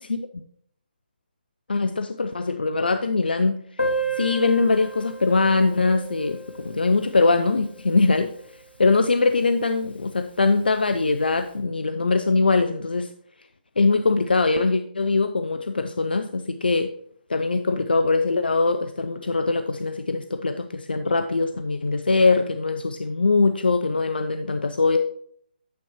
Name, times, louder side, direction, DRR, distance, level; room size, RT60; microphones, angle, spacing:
voice 1, 1.7-3.6 4.2-8.3 8.8-13.1 13.8-16.9 17.3-25.0, left 3 dB, 70° left, 8 dB, 0.5 m, -22 dB
Piano, 3.8-9.1 9.4-9.5 9.7-9.9 10.2-10.3 11.1-11.2, right 2 dB, 90° left, 1.2 m, -33 dB
9.4 x 6.9 x 3.0 m, 0.64 s
figure-of-eight pair, 140°, 5 cm